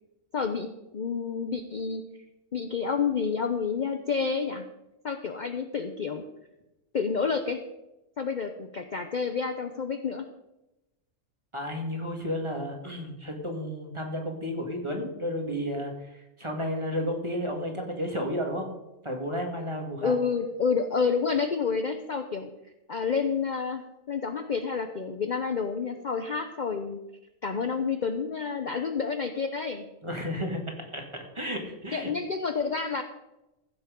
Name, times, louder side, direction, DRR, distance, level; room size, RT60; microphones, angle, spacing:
voice 1, 0.3-0.7 0.9-2.0 2.5-4.6 5.0-6.2 6.9-7.6 8.2-10.3 20.0-22.5 22.9-27.0 27.4-29.9 31.9-33.0, left 5 dB, 45° left, 6 dB, 0.8 m, -29 dB
voice 2, 11.5-18.7 19.0-20.1 30.0-30.6 30.9-31.0 31.3-32.1, equal, 20° right, 2 dB, 2.2 m, -32 dB
15.0 x 7.4 x 5.2 m, 0.95 s
omnidirectional pair, 1.4 m